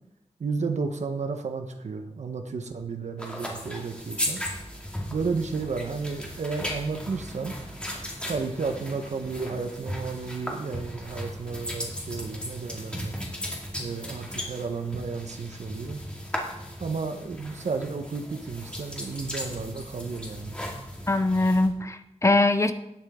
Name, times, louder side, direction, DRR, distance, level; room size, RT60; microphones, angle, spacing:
voice 1, 0.4-4.4 5.1-7.6 8.3-13.1 13.8-16.0 16.8-20.6, right 4 dB, 70° right, 6 dB, 1.2 m, -32 dB
sound 1, 3.2-21.7, equal, 10° left, 2.4 m, -36 dB
voice 2, 21.1-22.7, left 2 dB, 25° left, 9 dB, 0.7 m, -22 dB
18.0 x 7.4 x 3.8 m, 0.88 s
wide cardioid pair, 120°, 12 cm